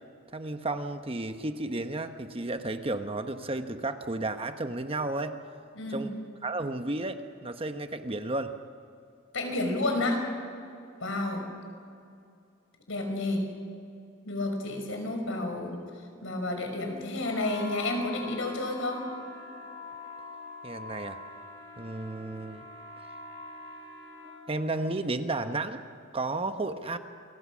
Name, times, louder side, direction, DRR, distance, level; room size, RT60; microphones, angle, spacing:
voice 1, 0.3-5.4 5.9-6.1 6.4-8.5 20.6-21.2 21.8-22.6 24.5-25.8 26.1-27.0, right 2 dB, 25° right, 8 dB, 1.0 m, -32 dB
voice 2, 5.7-6.1 9.3-10.2 11.0-11.4 12.9-13.4 14.3-15.8 16.2-19.1, left 2 dB, 70° left, 4 dB, 5.5 m, -30 dB
sound 1, 17.2-24.4, left 2 dB, 45° left, 8.0 m, -44 dB
28.5 x 23.5 x 6.3 m, 2.4 s
head